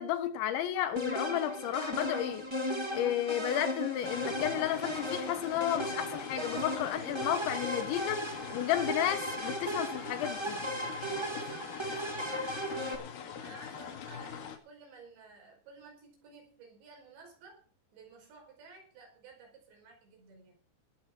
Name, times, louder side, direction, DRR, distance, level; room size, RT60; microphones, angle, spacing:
voice 1, 0.0-2.5 2.9-10.6, left 11 dB, 90° left, 3.7 m, -32 dB
sound 1, 0.9-12.9, equal, 35° right, 0.4 m, -36 dB
sound 2, 4.0-14.6, left 8 dB, 65° left, 3.7 m, -43 dB
voice 2, 11.2-13.0 13.4-17.6 17.9-20.6, right 4 dB, 75° right, 7.2 m, -54 dB
19.0 x 7.3 x 6.1 m
omnidirectional pair, 5.1 m